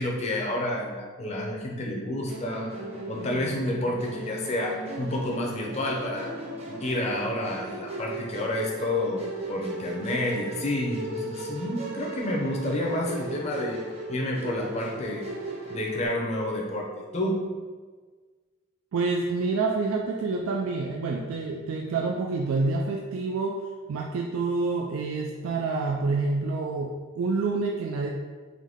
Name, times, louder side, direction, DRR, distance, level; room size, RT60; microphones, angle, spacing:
voice 1, 0.0-6.3 6.7-13.8 14.1-15.3 15.7-17.4, left 1 dB, 30° left, -1 dB, 0.6 m, -29 dB
Musical instrument, 2.3-16.1, right 1 dB, 30° right, 0.6 m, -37 dB
voice 2, 18.9-23.6 23.9-28.1, right 3 dB, 75° right, 1 dB, 0.3 m, -27 dB
3.9 x 3.1 x 3.5 m, 1.5 s
head